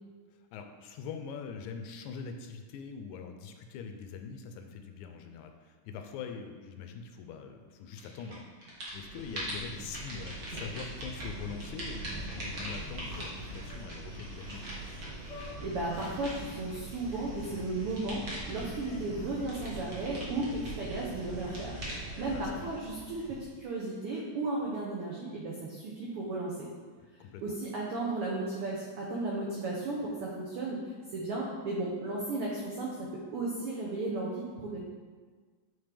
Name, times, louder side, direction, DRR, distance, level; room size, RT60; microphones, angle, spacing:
voice 1, 0.5-14.8 22.3-22.7 27.0-27.6, left 6 dB, 80° left, 5 dB, 1.9 m, -43 dB
sound 1, 8.0-8.4 8.6-23.6, right 1 dB, 45° right, 1.2 m, -41 dB
sound 2, 12.8-13.9 14.2-16.5 17.0-17.9 18.3-20.3 21.3-23.3 23.8-23.9, left 3 dB, 55° left, 1.1 m, -54 dB
voice 2, 15.6-26.7 27.4-34.8, right 2 dB, 80° right, -3 dB, 1.2 m, -35 dB
8.8 x 3.7 x 3.4 m, 1.5 s
omnidirectional pair, 3.5 m